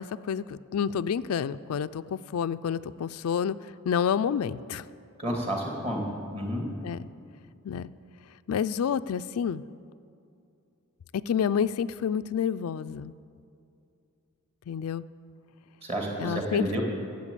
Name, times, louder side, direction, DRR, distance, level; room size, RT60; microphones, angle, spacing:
voice 1, 0.0-3.6 3.8-4.8 6.8-7.1 7.6-7.9 8.5-9.6 11.3-13.1 14.7-15.0 16.2-16.8, left 7 dB, 85° left, 13 dB, 0.4 m, -29 dB
voice 2, 5.2-6.0 6.3-6.6 15.8-16.8, equal, 30° right, 0 dB, 2.2 m, -30 dB
12.0 x 8.0 x 8.3 m, 2.6 s
head